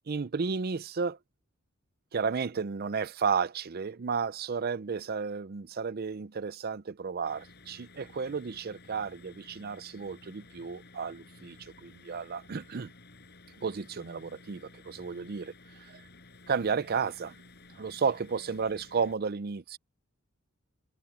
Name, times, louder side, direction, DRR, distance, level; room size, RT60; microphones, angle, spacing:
voice 1, 0.1-1.2 2.1-12.9 13.6-16.0 16.5-17.4 17.8-19.8, right 5 dB, 50° right, 0.5 m, -33 dB
sound 1, 7.2-19.2, left 3 dB, 55° left, 7.8 m, -54 dB
head